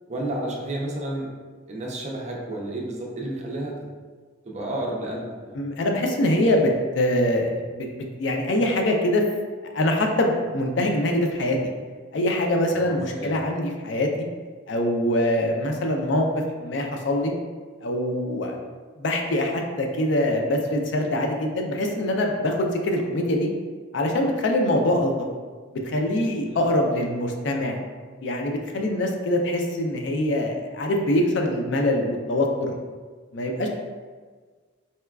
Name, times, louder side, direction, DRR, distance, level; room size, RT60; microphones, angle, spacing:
voice 1, 0.1-1.3 1.7-3.7 4.5-5.6 12.6-13.4 18.5-18.7 26.4-26.6, right 1 dB, 35° right, -1 dB, 0.5 m, -31 dB
voice 2, 5.5-6.7 6.9-7.9 8.2-9.2 9.7-11.6 12.1-14.3 14.7-16.3 16.6-17.3 17.8-18.6 19.0-22.6 22.8-23.5 23.9-25.1 25.8-27.8 28.2-32.8 33.3-33.7, left 1 dB, 65° left, 2 dB, 0.4 m, -23 dB
4.1 x 2.2 x 2.3 m, 1.5 s
head